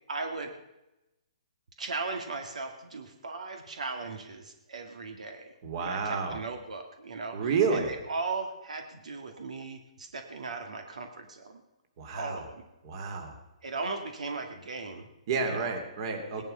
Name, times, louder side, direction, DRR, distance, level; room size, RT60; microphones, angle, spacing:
voice 1, 0.1-0.5 1.8-5.5 5.8-7.4 7.7-11.6 12.1-12.7 13.6-15.1 15.5-15.8 16.3-16.4, right 3 dB, 80° right, 5 dB, 2.1 m, -37 dB
voice 2, 5.6-6.4 7.3-7.9 12.0-12.4 12.8-13.4 15.3-16.4, right 5 dB, 45° right, 5 dB, 3.0 m, -30 dB
19.0 x 11.0 x 5.6 m, 0.97 s
hypercardioid pair, 150°, 4 cm